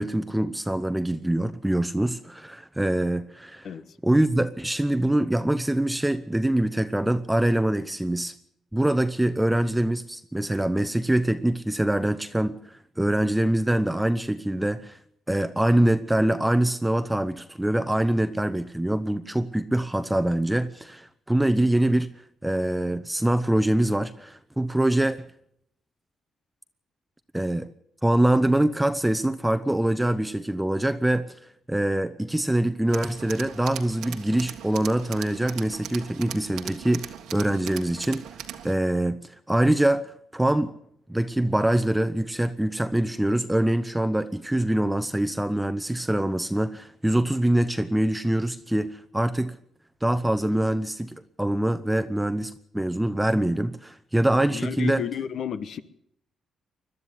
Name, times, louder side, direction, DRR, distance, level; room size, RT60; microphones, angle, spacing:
voice 1, 0.0-3.7 4.0-8.3 8.7-15.0 15.3-22.1 22.4-25.3 27.3-27.7 28.0-31.3 31.7-38.3 38.6-40.7 41.1-49.6 50.0-55.0, right 1 dB, 5° right, 0.9 m, -24 dB
Tools, 32.9-38.7, right 10 dB, 90° right, 1.6 m, -39 dB
voice 2, 54.5-55.8, left 8 dB, 65° left, 1.2 m, -31 dB
21.5 x 12.5 x 9.9 m
cardioid pair, 90°, 0 cm